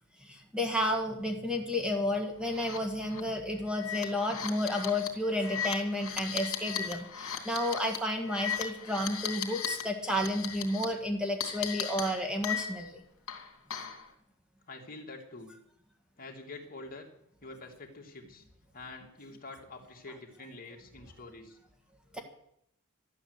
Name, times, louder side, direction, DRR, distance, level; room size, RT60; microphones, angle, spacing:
voice 1, 0.2-13.0 22.1-22.2, left 1 dB, 5° right, 2 dB, 1.7 m, -31 dB
sound 1, 2.6-2.8 3.1-3.2 3.7-9.8 10.1-10.8 11.4-12.9 13.3-14.0, left 8 dB, 70° left, 2.6 m, -37 dB
voice 2, 14.7-15.5 16.2-17.1 17.4-18.4 18.7-21.6, left 3 dB, 40° left, 1 dB, 2.6 m, -46 dB
12.5 x 12.0 x 8.2 m, 0.75 s
head